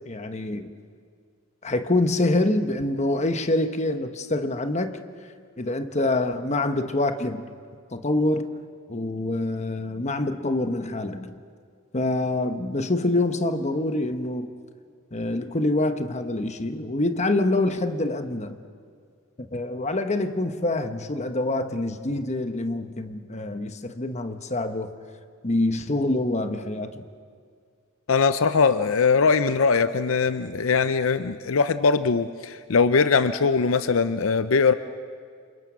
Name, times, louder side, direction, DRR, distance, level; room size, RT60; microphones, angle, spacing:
voice 1, 0.1-0.7 1.6-5.0 5.6-7.4 7.9-8.6 8.9-11.3 11.9-14.5 15.1-18.6 19.4-24.9 25.4-27.0, left 2 dB, 35° left, 8 dB, 1.2 m, -26 dB
voice 2, 28.1-34.7, left 5 dB, 75° left, 12 dB, 0.6 m, -21 dB
29.5 x 27.0 x 6.2 m, 2.1 s
head